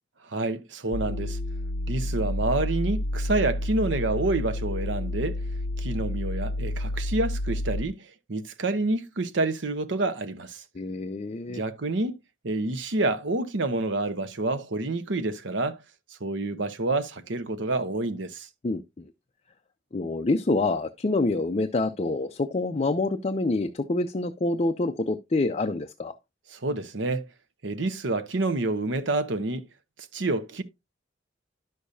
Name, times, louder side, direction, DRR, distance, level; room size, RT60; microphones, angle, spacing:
voice 1, 0.2-1.4 1.9-5.4 5.8-10.6 11.5-12.2 12.4-15.8 16.2-18.5 26.5-27.2 27.6-29.7 30.1-30.6, right 2 dB, 85° right, 0.9 m, -28 dB
sound 1, 0.9-7.8, left 1 dB, 85° left, 0.7 m, -30 dB
voice 2, 10.7-11.6 18.6-19.1 19.9-26.1, left 2 dB, 35° left, 0.5 m, -27 dB
11.0 x 6.6 x 2.7 m
head